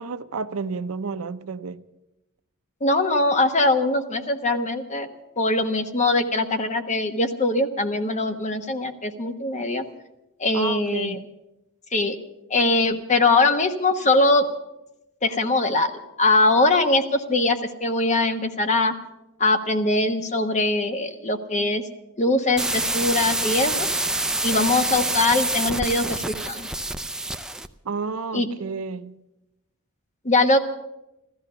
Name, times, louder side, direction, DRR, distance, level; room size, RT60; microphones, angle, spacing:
voice 1, 0.0-1.8 10.5-11.2 27.8-29.2, right 4 dB, 70° right, 0.6 m, -31 dB
voice 2, 2.8-5.1 5.4-9.8 10.4-11.2 11.9-12.2 12.5-14.4 15.2-15.9 16.2-18.9 19.4-21.8 22.2-23.9 24.4-26.7 28.3-28.5 30.2-30.6, left 2 dB, 35° left, 1.2 m, -22 dB
sound 1, 22.6-27.7, right 2 dB, 5° right, 0.4 m, -26 dB
15.0 x 14.0 x 6.8 m
head